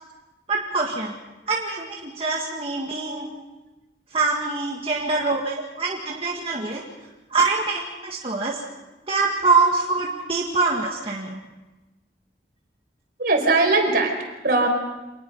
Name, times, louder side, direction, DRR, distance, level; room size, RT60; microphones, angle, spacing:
voice 1, 0.5-1.1 1.5-3.3 4.1-6.8 7.3-8.6 9.1-11.4, right 3 dB, 30° right, -2 dB, 1.9 m, -24 dB
voice 2, 13.2-14.1 14.4-14.7, right 3 dB, 55° right, 3 dB, 4.6 m, -21 dB
26.0 x 20.0 x 5.6 m, 1.1 s
head